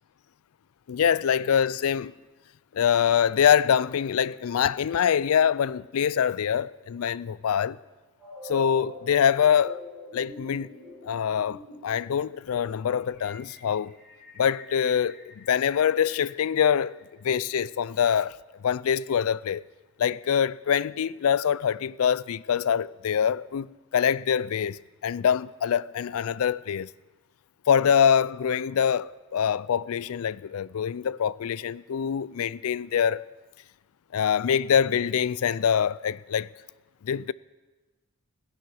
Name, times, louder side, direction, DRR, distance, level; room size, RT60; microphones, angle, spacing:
voice 1, 0.9-2.1 2.7-7.8 8.4-9.8 10.1-10.7 11.0-14.0 14.4-18.4 18.6-19.6 20.0-26.9 27.7-33.3 34.1-36.5 37.0-37.3, left 8 dB, 75° left, 0.4 m, -24 dB
sound 1, 8.2-17.2, left 2 dB, 5° right, 6.0 m, -46 dB
16.0 x 10.5 x 6.4 m
head